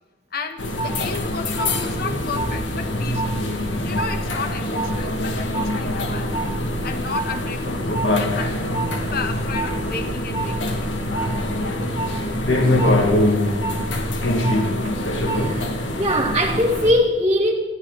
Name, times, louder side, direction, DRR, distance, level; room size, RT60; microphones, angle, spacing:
voice 1, 0.3-3.5 3.8-6.3 6.8-8.6 9.1-11.0, left 4 dB, 55° left, 6 dB, 1.7 m, -33 dB
operation lisboa, 0.6-16.9, left 1 dB, 80° left, 2.4 m, -23 dB
voice 2, 15.3-17.5, equal, 25° right, -5 dB, 1.9 m, -21 dB
21.0 x 14.5 x 4.2 m, 1.2 s
head